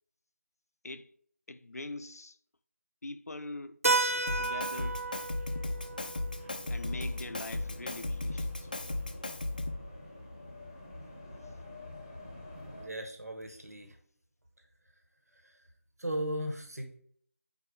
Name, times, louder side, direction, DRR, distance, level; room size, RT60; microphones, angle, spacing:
voice 1, 1.5-2.4 3.0-3.8 4.4-5.1 6.7-8.7, left 2 dB, 75° left, 0.6 m, -43 dB
Keyboard (musical), 3.8-8.3, right 3 dB, 65° right, 0.6 m, -34 dB
sound 1, 4.0-12.9, left 1 dB, 10° left, 0.8 m, -48 dB
Drum kit, 4.3-9.9, left 2 dB, 35° left, 0.4 m, -36 dB
voice 2, 12.5-14.0 15.3-15.6 16.0-17.0, right 1 dB, 85° right, 1.7 m, -37 dB
4.7 x 4.5 x 4.9 m
figure-of-eight pair, 170°, 8 cm